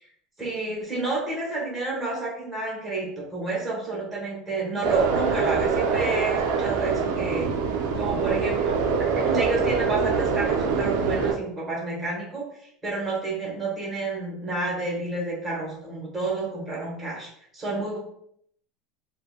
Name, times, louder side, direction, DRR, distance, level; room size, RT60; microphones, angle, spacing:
voice 1, 0.4-7.5 7.9-8.8 9.1-12.4 12.8-18.0, right 3 dB, 10° right, -5 dB, 1.0 m, -30 dB
sound 1, 4.8-11.3, right 5 dB, 65° right, 0.4 m, -24 dB
3.6 x 2.1 x 2.2 m, 0.69 s
cardioid pair, 170°, 0 cm